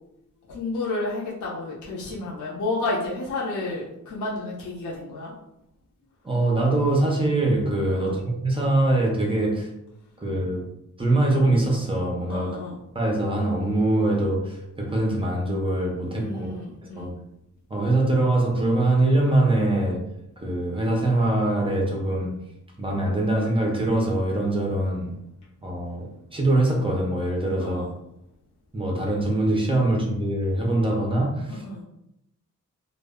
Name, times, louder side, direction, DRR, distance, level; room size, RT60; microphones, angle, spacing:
voice 1, 0.5-5.3 7.9-8.2 12.3-12.7 16.2-17.1 27.6-27.9 31.6-31.8, left 2 dB, 60° left, -5 dB, 0.6 m, -31 dB
voice 2, 6.2-9.7 10.2-10.7 11.0-12.6 12.9-16.5 16.8-17.1 17.7-20.0 20.4-22.4 22.8-25.1 25.6-27.9 28.7-31.6, right 1 dB, 15° right, -1 dB, 0.4 m, -23 dB
2.0 x 2.0 x 3.4 m, 0.82 s
wide cardioid pair, 160°, 33 cm